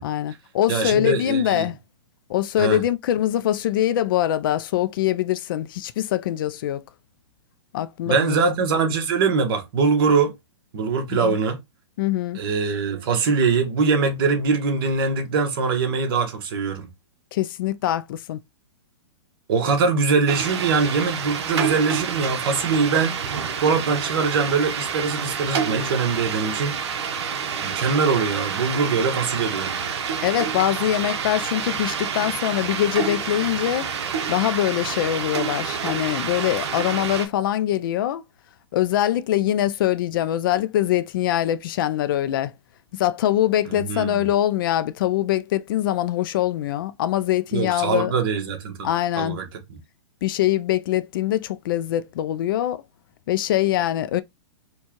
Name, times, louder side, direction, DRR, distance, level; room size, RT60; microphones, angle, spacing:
voice 1, 0.0-1.8 2.3-6.8 7.7-8.4 11.1-11.4 12.0-12.4 17.3-18.4 30.2-33.9 34.3-38.2 38.7-42.5 42.9-48.1 48.8-49.4 50.2-52.8 53.3-54.2, left 12 dB, 50° left, 0.4 m, -23 dB
voice 2, 0.7-1.7 2.6-2.8 8.1-10.3 10.7-11.6 12.3-16.9 19.5-23.2 23.6-26.8 27.5-29.8 43.7-44.2 47.5-48.9 49.2-49.8, right 4 dB, 50° right, 1.2 m, -22 dB
sound 1, 20.3-37.3, right 7 dB, 65° right, 0.9 m, -28 dB
4.4 x 2.3 x 2.9 m
hypercardioid pair, 150°, 15 cm